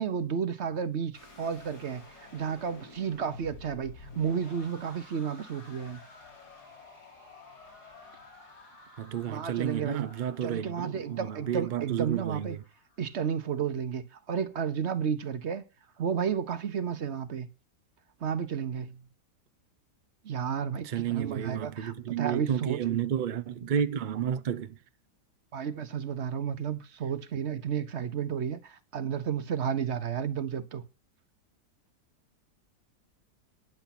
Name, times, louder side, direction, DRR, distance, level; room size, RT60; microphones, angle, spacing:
voice 1, 0.0-6.0 9.3-10.1 10.4-12.6 13.0-15.6 16.0-17.5 18.2-19.0 20.2-23.0 25.5-30.8, right 7 dB, 50° right, 1.0 m, -32 dB
sound 1, 1.1-13.2, left 3 dB, 65° left, 3.6 m, -52 dB
voice 2, 9.0-12.6 20.8-24.8, right 9 dB, 85° right, 0.4 m, -31 dB
10.5 x 7.0 x 5.9 m
omnidirectional pair, 1.8 m